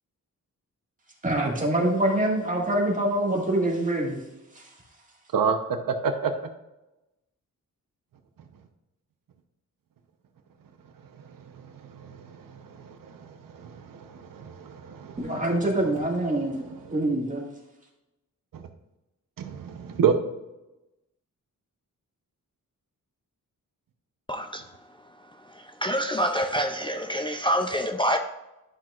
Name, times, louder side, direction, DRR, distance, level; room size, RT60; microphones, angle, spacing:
voice 1, 1.2-4.2 4.6-4.7 15.2-17.4, right 1 dB, 25° right, -2 dB, 1.9 m, -25 dB
voice 2, 5.9-6.3 12.8-13.3 13.6-15.2 18.5-18.6 19.4-20.1, right 6 dB, 80° right, 6 dB, 0.9 m, -27 dB
voice 3, 24.3-24.6 25.8-28.2, equal, 15° left, 4 dB, 0.4 m, -26 dB
11.5 x 6.0 x 2.5 m, 0.98 s
wide cardioid pair, 140°, 33 cm